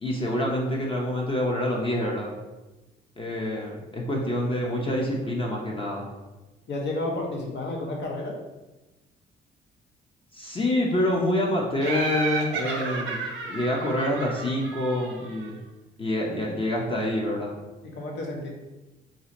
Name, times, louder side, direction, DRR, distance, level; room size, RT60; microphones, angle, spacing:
voice 1, 0.0-2.3 3.2-6.0 10.3-15.6 16.0-17.6, left 1 dB, 25° left, -2 dB, 0.6 m, -27 dB
voice 2, 6.7-8.4 17.8-18.5, left 2 dB, 65° left, 0 dB, 0.8 m, -31 dB
Laughter, 11.8-15.5, right 3 dB, 85° right, 0.6 m, -32 dB
2.7 x 2.5 x 4.0 m, 1.1 s
cardioid pair, 90°, 20 cm